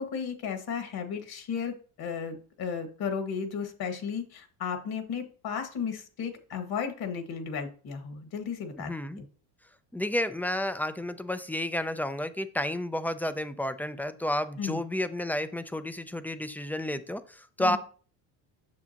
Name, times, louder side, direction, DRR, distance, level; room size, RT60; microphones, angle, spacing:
voice 1, 0.0-9.2 14.6-14.8 17.6-17.8, left 6 dB, 55° left, 6 dB, 1.8 m, -34 dB
voice 2, 8.8-9.2 9.9-17.8, left 1 dB, 5° left, 12 dB, 0.3 m, -31 dB
8.5 x 6.9 x 2.9 m, 0.40 s
cardioid pair, 115°, 45 cm